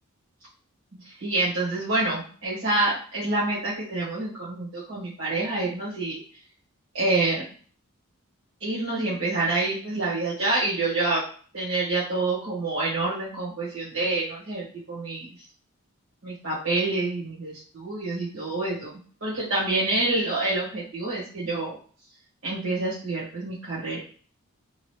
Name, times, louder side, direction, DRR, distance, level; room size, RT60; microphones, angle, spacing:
voice 1, 0.9-6.2 6.9-7.4 8.6-11.2 11.5-15.3 16.2-18.9 19.2-21.8 22.4-24.0, right 2 dB, 65° right, -8 dB, 1.2 m, -27 dB
2.9 x 2.4 x 3.2 m, 0.42 s
head